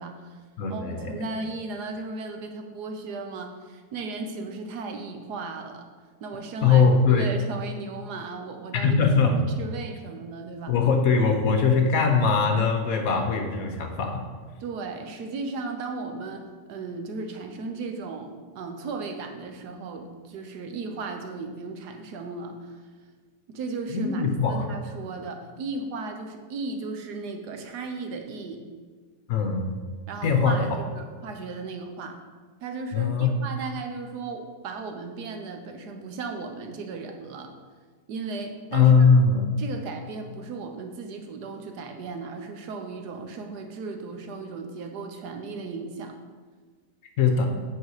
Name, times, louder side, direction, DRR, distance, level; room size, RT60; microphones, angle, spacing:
voice 1, 0.0-0.4 0.7-5.9 6.2-9.0 9.3-10.7 14.6-22.7 23.5-24.2 24.5-28.6 30.1-32.2 32.6-37.5 38.1-39.0 39.6-46.2, right 3 dB, 80° right, 4 dB, 1.4 m, -36 dB
voice 2, 0.6-1.2 6.6-7.3 8.7-9.4 10.7-14.2 23.9-24.7 29.3-29.7 30.2-30.6 32.9-33.3 38.7-39.5 47.2-47.4, left 5 dB, 65° left, 4 dB, 1.2 m, -21 dB
7.9 x 4.9 x 4.7 m, 1.5 s
omnidirectional pair, 1.7 m